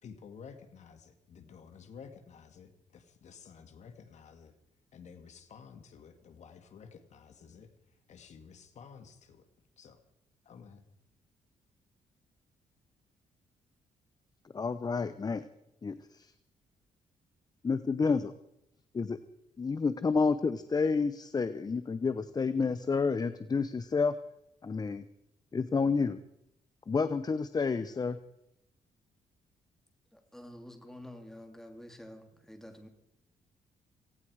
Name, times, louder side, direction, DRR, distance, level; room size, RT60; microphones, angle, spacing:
voice 1, 0.0-4.5 4.9-9.4 9.8-10.0 10.5-10.9, left 6 dB, 60° left, 7 dB, 2.0 m, -52 dB
voice 2, 14.5-15.5 15.8-16.3 17.6-18.3 18.9-19.2 19.6-24.1 24.6-25.0 25.5-26.2 26.9-28.2, left 4 dB, 30° left, 12 dB, 0.8 m, -30 dB
voice 3, 30.1-32.9, left 1 dB, 5° left, 4 dB, 3.1 m, -49 dB
17.5 x 17.0 x 4.8 m, 0.82 s
cardioid pair, 90°, 13 cm